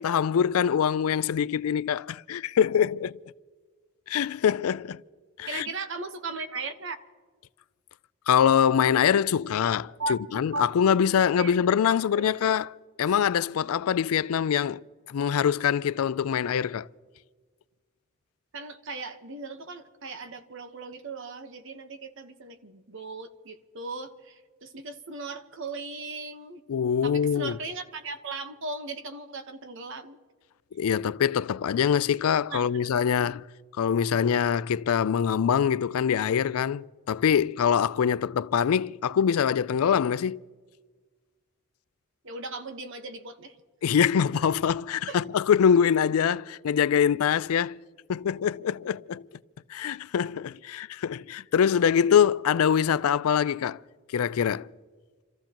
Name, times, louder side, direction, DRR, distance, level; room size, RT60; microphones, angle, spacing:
voice 1, 0.0-3.2 4.1-5.0 5.4-5.7 8.3-16.9 26.7-27.6 30.7-33.4 33.8-40.4 43.8-47.8 48.1-49.2 49.7-53.8 54.1-54.7, left 8 dB, 75° left, 0.4 m, -24 dB
voice 2, 5.5-7.0 10.0-10.2 10.5-10.7 11.4-11.6 11.9-12.3 18.5-26.6 27.0-30.2 32.5-33.0 42.2-43.6 45.1-45.2, right 3 dB, 55° right, 1.1 m, -37 dB
29.0 x 14.0 x 3.0 m
head